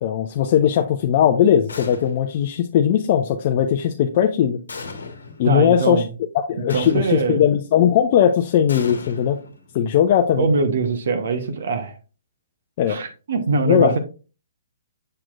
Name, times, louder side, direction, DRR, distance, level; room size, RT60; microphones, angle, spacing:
voice 1, 0.0-4.6 5.4-6.1 6.3-9.4 9.7-10.5 12.8-13.0 13.6-13.9, left 9 dB, 45° left, 0.5 m, -18 dB
sound 1, 1.7-2.4 4.7-5.5 6.7-7.5 8.7-9.9, left 4 dB, 80° left, 1.2 m, -36 dB
voice 2, 5.4-6.1 6.7-7.4 10.4-11.9 12.9-14.0, right 4 dB, 65° right, 1.0 m, -22 dB
6.6 x 5.9 x 2.4 m
hypercardioid pair, 130°, 0 cm